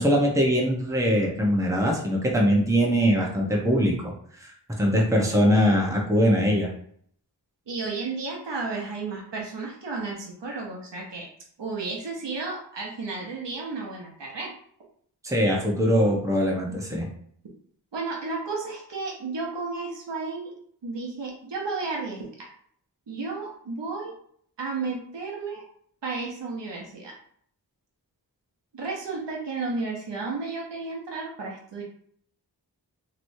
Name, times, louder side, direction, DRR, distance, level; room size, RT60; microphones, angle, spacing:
voice 1, 0.0-3.9 4.4-4.5 4.8-6.7 15.2-17.1, equal, 5° right, -2 dB, 0.9 m, -22 dB
voice 2, 7.7-11.3 11.6-14.5 17.9-20.5 20.8-22.5 23.1-24.1 24.6-25.6 26.0-27.1 28.7-31.8, right 3 dB, 80° right, -1 dB, 0.9 m, -33 dB
3.0 x 3.0 x 2.7 m, 0.62 s
wide cardioid pair, 40°, 42 cm